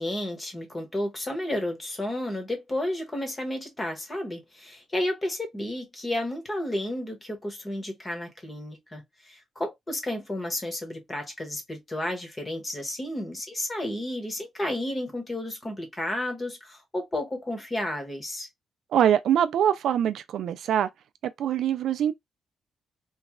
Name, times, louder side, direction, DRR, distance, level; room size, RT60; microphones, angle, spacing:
voice 1, 0.0-18.5, left 1 dB, 20° left, 1.1 m, -32 dB
voice 2, 18.9-20.9 21.2-22.1, right 10 dB, 65° right, 0.3 m, -23 dB
3.1 x 2.3 x 3.5 m
cardioid pair, 160°, 0 cm